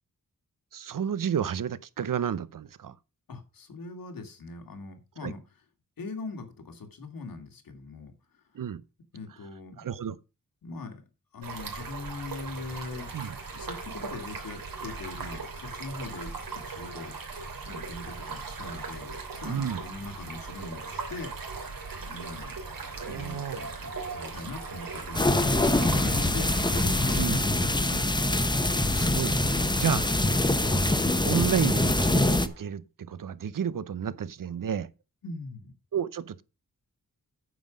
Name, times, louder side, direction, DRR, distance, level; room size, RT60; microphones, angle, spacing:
voice 1, 0.7-3.0 5.2-5.3 8.5-8.8 9.8-10.2 13.1-13.4 19.5-19.8 23.0-23.6 27.1-27.5 28.9-30.0 30.6-30.8 31.2-34.9 35.9-36.4, right 8 dB, 70° right, 0.8 m, -31 dB
voice 2, 3.3-5.4 6.0-8.1 9.1-9.9 10.6-11.1 11.3-13.1 13.5-17.1 17.6-21.6 22.0-22.6 23.1-26.5 27.1-27.2 27.6-28.0 30.0-30.2 35.2-35.7, left 3 dB, 90° left, 2.4 m, -41 dB
Stream, 11.4-27.3, right 4 dB, 90° right, 3.2 m, -39 dB
sound 1, 22.4-32.7, right 3 dB, 45° right, 3.5 m, -47 dB
sound 2, 25.1-32.5, left 1 dB, 15° left, 0.9 m, -24 dB
9.3 x 7.4 x 5.2 m
wide cardioid pair, 110°, 34 cm